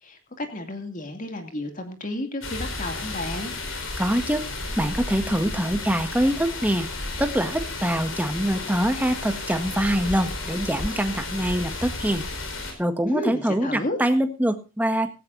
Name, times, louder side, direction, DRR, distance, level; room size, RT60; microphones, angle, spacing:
voice 1, 0.0-3.5 13.1-14.0, left 1 dB, 40° left, 5 dB, 2.6 m, -32 dB
sound 1, 2.4-12.7, left 2 dB, 85° left, 4.8 m, -33 dB
voice 2, 4.0-4.5 4.8-6.9 7.2-12.2 12.8-15.1, equal, 10° right, 8 dB, 1.5 m, -24 dB
17.0 x 16.5 x 2.7 m, 0.30 s
head